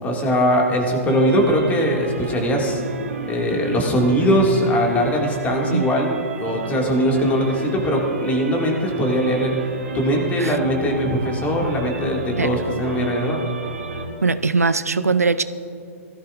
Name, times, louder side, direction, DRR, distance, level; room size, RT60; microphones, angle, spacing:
voice 1, 0.0-2.8 3.3-9.5 9.9-13.4, equal, 20° left, 0 dB, 2.1 m, -20 dB
sound 1, 1.1-14.1, right 3 dB, 70° right, 2.7 m, -32 dB
voice 2, 14.2-15.4, right 4 dB, 90° right, 13 dB, 0.5 m, -20 dB
19.5 x 14.0 x 2.5 m, 2.6 s
figure-of-eight pair, 120°, 8 cm